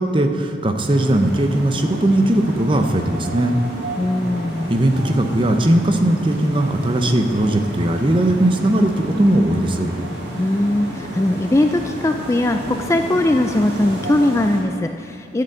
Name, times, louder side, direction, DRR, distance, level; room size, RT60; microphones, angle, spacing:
voice 1, 0.0-3.6 4.7-9.9, right 1 dB, 25° right, 5 dB, 0.8 m, -18 dB
sound 1, 0.8-14.6, right 1 dB, 60° right, 3.1 m, -31 dB
voice 2, 4.0-4.7 10.4-15.4, left 1 dB, 15° left, 6 dB, 0.3 m, -20 dB
12.0 x 6.7 x 7.9 m, 2.3 s
head